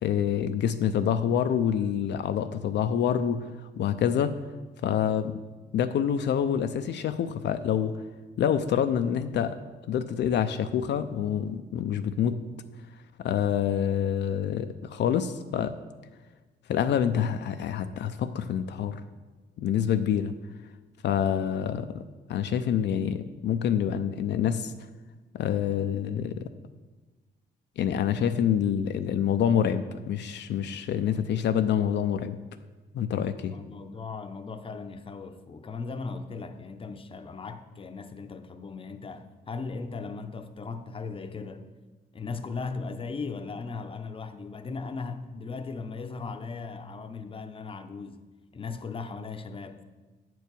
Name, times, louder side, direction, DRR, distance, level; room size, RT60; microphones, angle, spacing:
voice 1, 0.0-3.4 3.8-4.4 4.8-5.4 5.7-8.0 8.4-9.6 9.9-12.5 13.2-15.7 16.7-19.0 19.6-20.3 21.0-21.9 22.3-24.7 25.3-26.4 27.8-32.4 32.9-33.5, left 9 dB, 75° left, 0.5 m, -26 dB
voice 2, 33.5-41.7 42.1-48.3 48.5-49.8, left 4 dB, 30° left, 0.6 m, -37 dB
8.3 x 4.6 x 6.8 m
cardioid pair, 100°, 18 cm